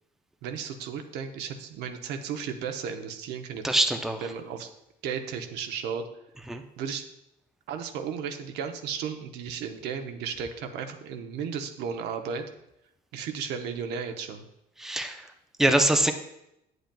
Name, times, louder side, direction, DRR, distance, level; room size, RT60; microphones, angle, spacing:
voice 1, 0.4-3.8 4.2-4.7 5.0-6.1 6.8-7.1 7.7-12.4 13.1-14.5, right 7 dB, 85° right, 6 dB, 0.8 m, -34 dB
voice 2, 3.6-4.2 6.5-6.6 14.8-15.3 15.6-16.1, right 1 dB, ahead, 6 dB, 0.5 m, -23 dB
8.7 x 7.9 x 2.3 m, 0.84 s
cardioid pair, 110°, 17 cm